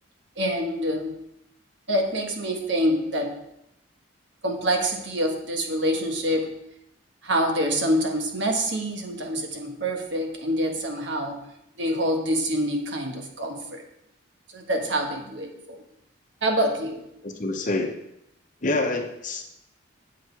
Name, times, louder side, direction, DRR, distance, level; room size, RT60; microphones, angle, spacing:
voice 1, 0.4-1.2 1.9-3.4 4.4-6.5 7.2-11.4 11.8-13.8 14.5-15.8 16.4-17.0, equal, 60° right, 3 dB, 1.4 m, -26 dB
voice 2, 17.2-18.0 18.6-19.4, left 2 dB, 40° left, 4 dB, 0.9 m, -27 dB
8.6 x 6.5 x 4.6 m, 0.79 s
head